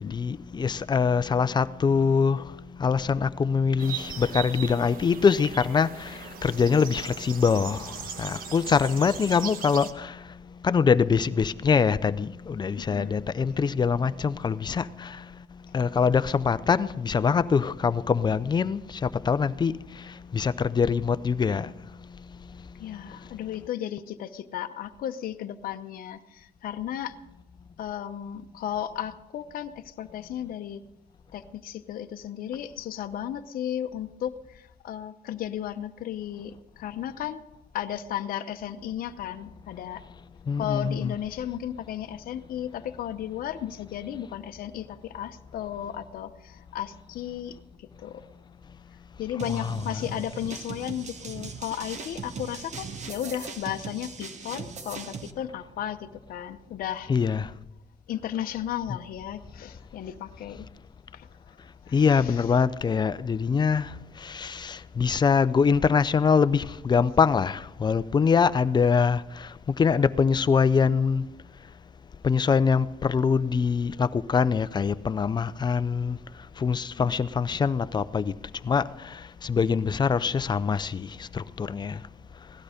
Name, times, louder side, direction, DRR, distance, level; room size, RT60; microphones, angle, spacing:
voice 1, 0.0-2.5 2.8-10.2 10.6-15.2 15.7-19.8 20.0-21.7 40.5-41.1 49.5-49.8 57.1-57.5 61.9-63.9 64.2-69.5 69.8-71.3 72.2-76.2 76.6-78.3 78.6-82.0, left 6 dB, 25° left, 0.5 m, -24 dB
sound 1, 3.8-9.9, right 8 dB, 60° right, 1.1 m, -39 dB
voice 2, 12.8-13.3 22.8-27.2 27.8-30.8 31.3-37.4 37.7-40.0 40.6-48.2 49.2-57.1 58.1-60.7 61.1-61.3 61.8-62.5 77.0-77.1, left 10 dB, 60° left, 0.8 m, -34 dB
sound 2, 49.4-55.3, right 5 dB, 45° right, 1.2 m, -39 dB
17.0 x 12.0 x 5.1 m
cardioid pair, 110°, 17 cm